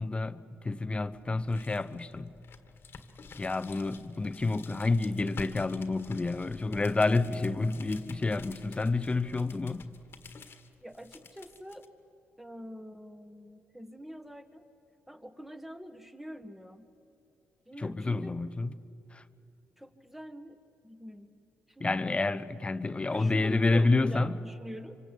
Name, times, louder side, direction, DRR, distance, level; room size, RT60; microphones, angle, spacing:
voice 1, 0.0-2.3 3.4-9.9 17.8-18.7 19.1-19.2 21.8-24.3, left 3 dB, 25° left, 0.9 m, -29 dB
sound 1, 1.0-11.9, left 5 dB, 50° left, 1.7 m, -50 dB
voice 2, 10.8-11.9 12.4-14.6 15.1-16.9 17.7-18.3 19.8-20.6 20.8-21.3 21.7-22.0 23.1-25.0, equal, 5° right, 1.8 m, -44 dB
25.0 x 25.0 x 8.5 m
cardioid pair, 75°, 5 cm